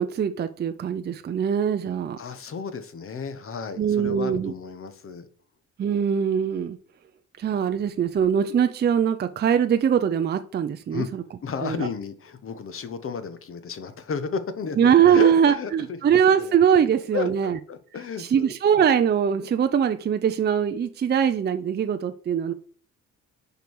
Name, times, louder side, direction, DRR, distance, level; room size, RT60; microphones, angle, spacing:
voice 1, 0.0-2.2 3.8-4.5 5.8-6.8 7.4-11.2 11.6-11.9 14.8-17.6 18.2-22.5, right 8 dB, 35° right, 0.5 m, -22 dB
voice 2, 2.2-5.2 10.9-11.1 11.4-16.0 16.4-16.5 17.1-18.5 22.5-22.6, left 6 dB, 45° left, 0.9 m, -33 dB
5.2 x 4.6 x 4.7 m
cardioid pair, 90°, 30 cm